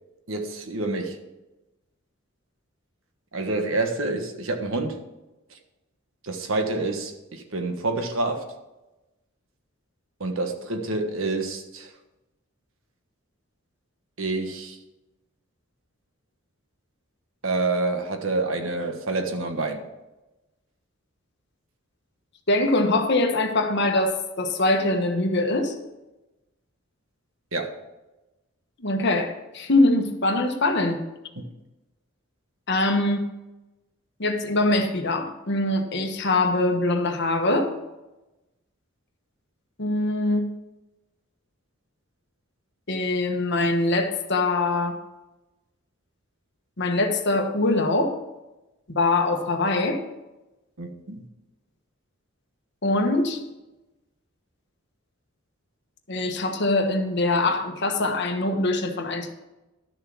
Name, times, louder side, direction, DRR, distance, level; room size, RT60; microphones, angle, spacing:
voice 1, 0.3-1.2 3.3-5.0 6.2-8.4 10.2-11.9 14.2-14.8 17.4-19.8 27.5-27.8 50.8-51.2, right 2 dB, 70° right, 6 dB, 1.4 m, -27 dB
voice 2, 22.5-25.7 28.8-31.1 32.7-33.2 34.2-37.7 39.8-40.5 42.9-45.0 46.8-48.2 48.9-50.0 52.8-53.4 56.1-59.3, left 2 dB, 55° left, 5 dB, 1.3 m, -23 dB
12.0 x 6.8 x 6.1 m, 1.0 s
head